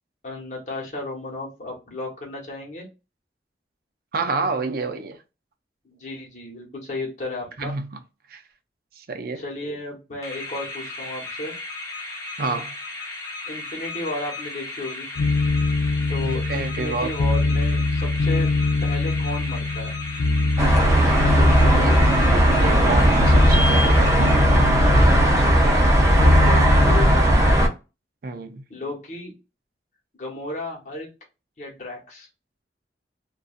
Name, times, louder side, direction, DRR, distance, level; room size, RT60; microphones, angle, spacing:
voice 1, 0.2-2.9 5.8-7.7 9.3-11.5 13.5-15.1 16.1-18.5 18.8-20.0 21.2-22.9 25.4-25.9 26.2-27.5 28.7-29.3 30.2-31.1 31.6-32.3, left 1 dB, 45° left, 1.1 m, -34 dB
voice 2, 4.1-5.2 7.6-8.0 8.3-8.4 9.0-9.4 12.4-12.7 16.2-17.2 21.8-22.0 22.3-24.7 28.2-28.6, right 3 dB, 55° right, 0.5 m, -29 dB
sound 1, 10.2-24.9, left 2 dB, 20° left, 0.7 m, -35 dB
sound 2, 15.2-27.2, left 2 dB, 90° left, 0.4 m, -23 dB
sound 3, 20.6-27.7, right 1 dB, 15° right, 0.7 m, -17 dB
2.6 x 2.3 x 2.4 m
head